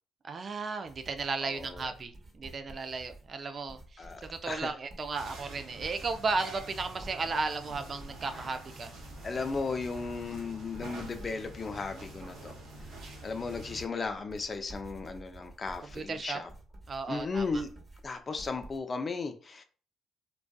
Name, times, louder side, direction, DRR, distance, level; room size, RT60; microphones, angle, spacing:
voice 1, 0.2-8.9 15.9-16.4 16.9-17.6, right 4 dB, 45° right, 8 dB, 0.3 m, -35 dB
sound 1, 0.9-18.8, right 1 dB, 25° right, 0.9 m, -51 dB
voice 2, 1.4-1.9 4.0-4.7 9.2-12.5 13.2-16.5 17.1-17.7 18.0-19.6, left 4 dB, 40° left, 7 dB, 0.4 m, -35 dB
sound 2, 5.2-13.8, right 1 dB, 75° right, 0.8 m, -47 dB
2.4 x 2.3 x 2.2 m, 0.39 s
hypercardioid pair, 55°, 0 cm